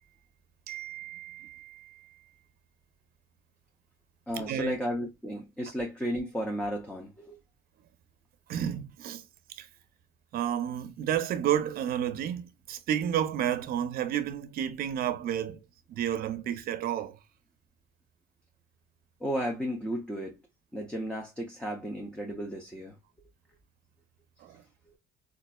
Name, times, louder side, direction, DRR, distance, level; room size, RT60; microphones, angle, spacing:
voice 1, 0.7-2.2 4.3-4.7 8.5-9.2 9.6-9.7 10.3-15.6 15.9-17.2 24.4-24.6, right 10 dB, 60° right, 0.5 m, -31 dB
voice 2, 4.3-7.4 19.2-20.4 20.7-23.0, equal, 5° left, 0.6 m, -33 dB
3.8 x 2.4 x 2.2 m
cardioid pair, 110°, 17 cm